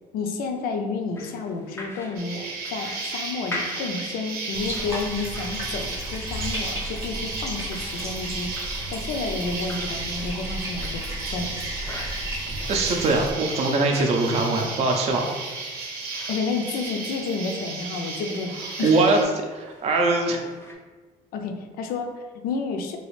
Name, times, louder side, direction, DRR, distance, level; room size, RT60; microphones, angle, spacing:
voice 1, 0.1-8.5 8.9-11.0 11.3-11.5 16.3-19.0 21.3-23.0, left 4 dB, 75° left, 4 dB, 0.5 m, -30 dB
sound 1, 1.1-20.7, left 2 dB, 15° left, 0.5 m, -44 dB
Insect, 2.2-19.2, right 3 dB, 80° right, 0.7 m, -34 dB
Bathtub (filling or washing), 4.5-13.3, equal, 15° right, 0.7 m, -34 dB
voice 2, 12.7-15.3 18.8-20.4, right 3 dB, 45° right, 2 dB, 0.4 m, -22 dB
2.9 x 2.4 x 3.1 m, 1.4 s
cardioid pair, 115°, 15 cm